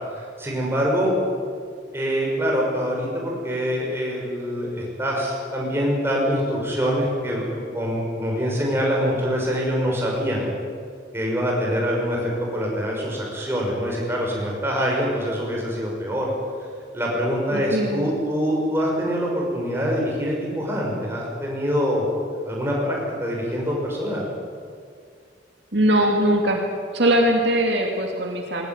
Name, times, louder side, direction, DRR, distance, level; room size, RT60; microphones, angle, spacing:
voice 1, 0.1-1.1 1.9-10.5 11.1-16.3 16.9-22.0 22.5-24.2, equal, 15° right, -3 dB, 6.5 m, -24 dB
voice 2, 17.5-18.1 25.7-26.6 26.9-28.7, right 1 dB, 65° right, 1 dB, 2.8 m, -21 dB
21.0 x 19.0 x 9.5 m, 2.2 s
head